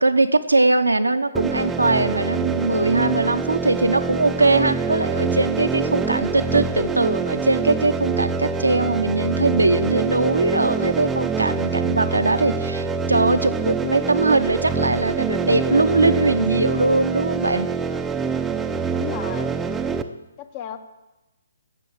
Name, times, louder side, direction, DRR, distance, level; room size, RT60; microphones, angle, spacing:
voice 1, 0.0-17.7, right 2 dB, 90° right, 8 dB, 0.9 m, -21 dB
sound 1, 1.3-20.0, right 5 dB, 10° right, 0.6 m, -25 dB
voice 2, 5.9-6.3 18.9-19.5 20.4-20.8, left 9 dB, 35° left, 10 dB, 1.1 m, -35 dB
12.5 x 7.7 x 7.6 m, 1.0 s
figure-of-eight pair, 135°, 0 cm